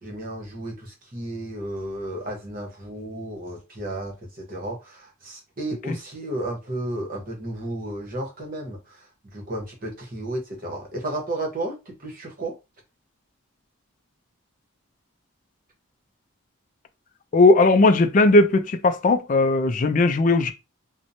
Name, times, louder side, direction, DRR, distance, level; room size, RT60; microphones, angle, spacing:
voice 1, 0.0-8.8 9.3-11.8 12.0-12.5, right 1 dB, 40° right, 0.9 m, -33 dB
voice 2, 17.3-20.5, left 2 dB, 40° left, 0.3 m, -17 dB
2.9 x 2.1 x 2.6 m
head